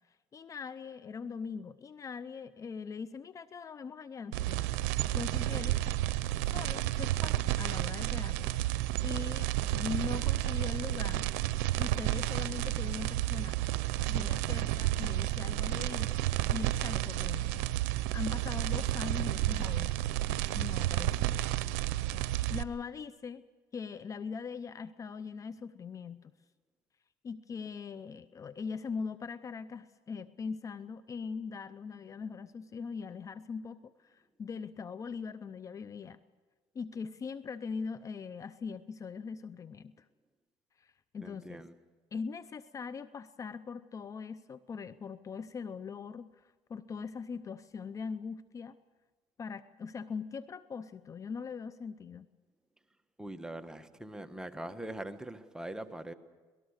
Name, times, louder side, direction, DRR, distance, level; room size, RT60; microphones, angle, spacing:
voice 1, 0.3-5.8 6.4-11.3 11.8-13.6 14.1-16.2 16.5-17.6 18.1-19.9 20.5-21.4 22.5-23.4 23.7-26.3 27.2-36.2 36.7-40.0 40.8-41.6 42.1-48.8 49.4-52.3, left 5 dB, 35° left, 15 dB, 0.7 m, -41 dB
sound 1, 4.3-22.6, right 15 dB, 90° right, 0.7 m, -31 dB
voice 2, 41.2-41.8 53.2-56.1, right 1 dB, 5° right, 8 dB, 1.4 m, -42 dB
25.5 x 19.0 x 6.6 m, 1.3 s
supercardioid pair, 95°, 10 cm